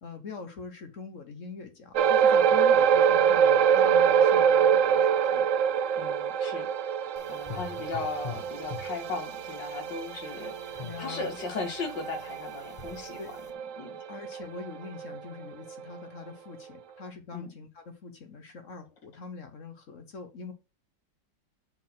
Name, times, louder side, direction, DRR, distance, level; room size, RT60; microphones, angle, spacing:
voice 1, 0.0-5.5 10.8-11.4 13.2-13.3 14.1-20.5, left 4 dB, 50° left, 1.2 m, -43 dB
sound 1, 1.9-14.6 15.0-15.2 15.7-15.8, right 8 dB, 70° right, 0.7 m, -25 dB
voice 2, 6.0-6.7 7.3-13.2 13.8-14.0 17.3-17.5, left 4 dB, 80° left, 2.2 m, -37 dB
sound 2, 7.2-13.5, left 5 dB, 25° left, 1.3 m, -45 dB
7.5 x 4.0 x 5.9 m
omnidirectional pair, 1.9 m